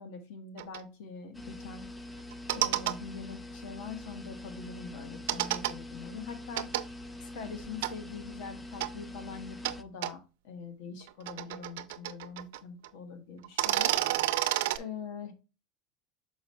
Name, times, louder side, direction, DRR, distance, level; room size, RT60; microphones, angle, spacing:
voice 1, 0.0-1.9 2.5-6.7 7.2-13.9 14.7-15.3, left 5 dB, 80° left, 7 dB, 1.6 m, -43 dB
sound 1, 0.6-0.8 2.3-2.9 5.3-5.7 6.6-6.8 7.8-7.9 8.8-8.9 9.6-9.8 10.0-10.1 11.0-12.6 12.8-12.9 13.4-14.8, right 15 dB, 90° right, 0.5 m, -29 dB
sound 2, 1.3-9.8, left 1 dB, 5° left, 0.4 m, -44 dB
6.4 x 4.9 x 3.1 m, 0.30 s
cardioid pair, 160°, 0 cm